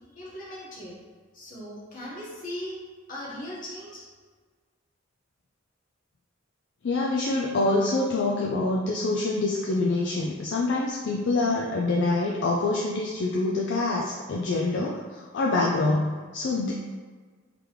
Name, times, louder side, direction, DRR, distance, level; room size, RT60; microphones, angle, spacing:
voice 1, 0.1-1.0 1.3-2.8 3.1-4.0, left 1 dB, 45° left, -6 dB, 1.3 m, -38 dB
voice 2, 6.8-16.7, left 2 dB, 60° left, -2 dB, 0.4 m, -26 dB
3.7 x 3.3 x 3.1 m, 1.5 s
head